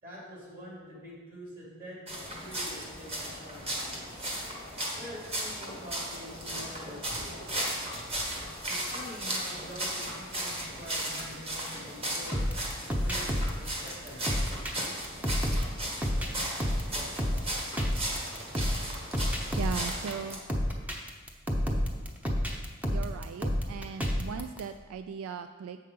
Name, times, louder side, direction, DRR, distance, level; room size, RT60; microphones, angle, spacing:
voice 1, 0.0-3.9 4.7-7.8 8.7-12.4 12.8-14.5, equal, 45° right, -5 dB, 2.7 m, -46 dB
sound 1, 2.1-20.4, right 1 dB, 30° right, 1.4 m, -36 dB
sound 2, 12.3-24.6, equal, 5° right, 0.6 m, -31 dB
voice 2, 19.6-20.4 22.9-25.8, right 6 dB, 85° right, 10 dB, 0.3 m, -38 dB
7.5 x 5.5 x 5.3 m, 1.4 s
head